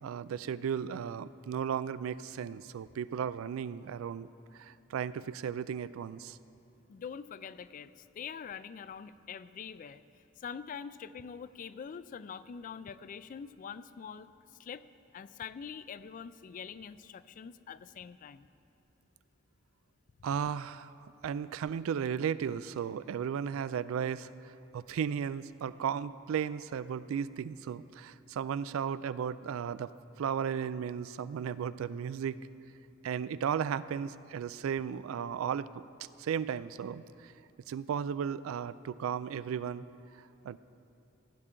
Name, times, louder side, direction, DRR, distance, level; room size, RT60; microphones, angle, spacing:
voice 1, 0.0-4.3 4.5-6.4 20.2-20.9 21.2-24.3 24.7-29.9 30.2-32.4 33.0-35.8 36.2-37.3 37.7-39.8 40.4-40.6, right 7 dB, 85° right, 16 dB, 0.3 m, -35 dB
voice 2, 6.9-10.0 10.4-14.8 15.1-18.5, left 7 dB, 40° left, 15 dB, 0.3 m, -44 dB
16.0 x 9.8 x 3.8 m, 2.9 s
head